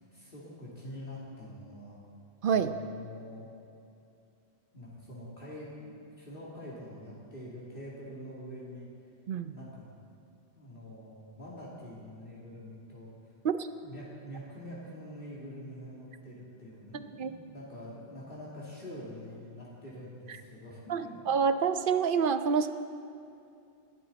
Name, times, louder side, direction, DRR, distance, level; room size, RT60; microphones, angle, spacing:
voice 1, 0.1-2.0 2.5-3.5 4.7-8.9 9.4-9.9 10.6-13.3 13.8-21.2, equal, 50° left, -6 dB, 2.6 m, -45 dB
voice 2, 2.4-2.7 9.3-9.5 13.4-13.7 16.9-17.3 20.9-22.7, right 6 dB, 60° right, 10 dB, 0.7 m, -28 dB
19.5 x 12.5 x 4.1 m, 2.5 s
omnidirectional pair, 1.2 m